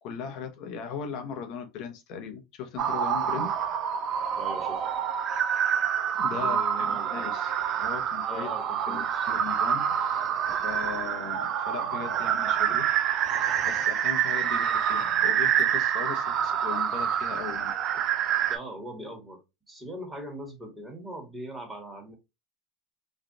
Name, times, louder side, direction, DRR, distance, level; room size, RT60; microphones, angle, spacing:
voice 1, 0.0-3.5 6.2-7.5 7.8-8.5 8.9-10.3 10.6-12.8 13.6-17.7, left 6 dB, 60° left, 1.0 m, -38 dB
sound 1, 2.8-18.6, right 9 dB, 50° right, 0.4 m, -27 dB
voice 2, 4.4-4.8 6.3-7.1 8.2-9.3 12.7-12.8 18.5-22.2, right 1 dB, 15° right, 1.5 m, -41 dB
3.3 x 2.4 x 2.7 m
hypercardioid pair, 85°, 0 cm